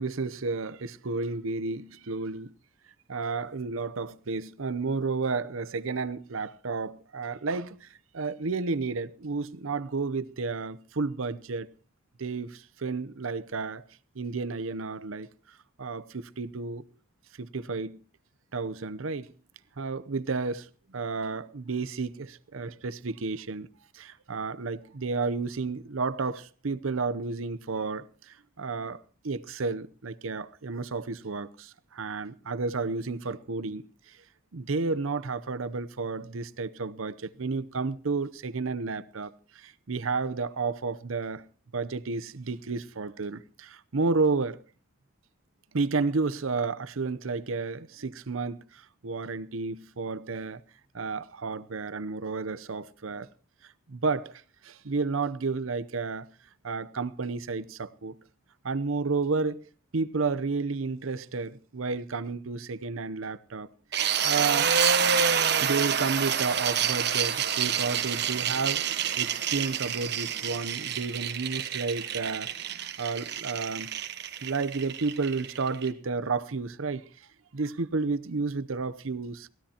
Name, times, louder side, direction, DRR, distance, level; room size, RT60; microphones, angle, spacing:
voice 1, 0.0-2.5 3.1-7.9 8.1-11.7 12.2-13.8 14.2-15.3 15.8-16.8 17.4-18.0 18.5-19.3 19.8-20.7 20.9-23.7 24.0-33.9 34.5-41.4 41.7-44.6 45.7-50.6 50.9-53.3 53.9-54.3 54.6-56.3 56.6-58.1 58.6-59.6 59.9-63.7 64.2-64.7 65.6-68.9 69.2-73.9 74.4-77.0 77.5-79.5, right 4 dB, 80° right, 0.7 m, -31 dB
sound 1, 63.9-75.9, right 7 dB, 55° right, 1.3 m, -28 dB
23.0 x 16.5 x 2.9 m
head